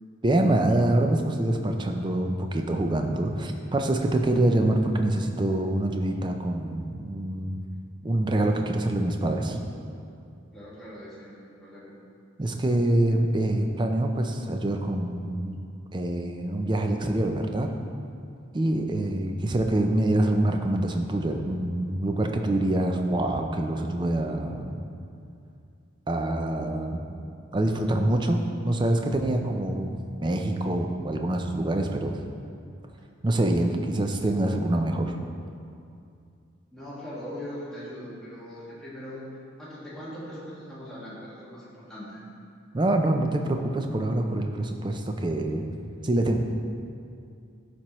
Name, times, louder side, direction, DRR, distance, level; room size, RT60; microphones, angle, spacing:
voice 1, 0.2-7.6 8.0-9.6 12.4-15.6 15.9-17.7 18.5-24.8 26.1-27.0 27.5-28.4 28.6-32.2 33.2-35.2 42.7-45.7 46.0-46.4, right 1 dB, 20° right, 4 dB, 0.4 m, -25 dB
voice 2, 10.5-11.9 36.7-42.2, equal, ahead, -10 dB, 1.7 m, -40 dB
12.0 x 4.3 x 3.0 m, 2.5 s
head